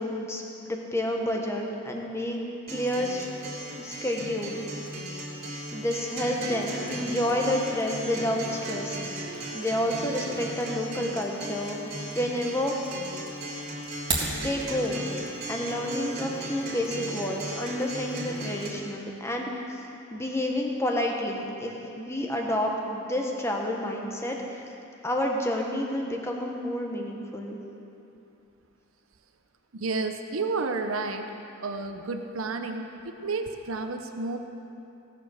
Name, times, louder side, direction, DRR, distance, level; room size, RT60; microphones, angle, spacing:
voice 1, 0.0-2.4 2.7-3.3 3.8-4.6 5.7-9.0 9.5-12.9 14.4-15.0 15.5-19.8 20.1-24.6 25.0-27.6, left 1 dB, 15° left, 1 dB, 1.2 m, -29 dB
Acoustic guitar, 2.7-18.7, right 1 dB, 45° right, 2.8 m, -36 dB
sound 1, 13.8-14.4, right 3 dB, 20° right, 1.8 m, -29 dB
voice 2, 29.7-31.3 31.6-34.4, right 3 dB, 85° right, 5 dB, 0.8 m, -31 dB
17.0 x 7.0 x 6.4 m, 2.8 s
head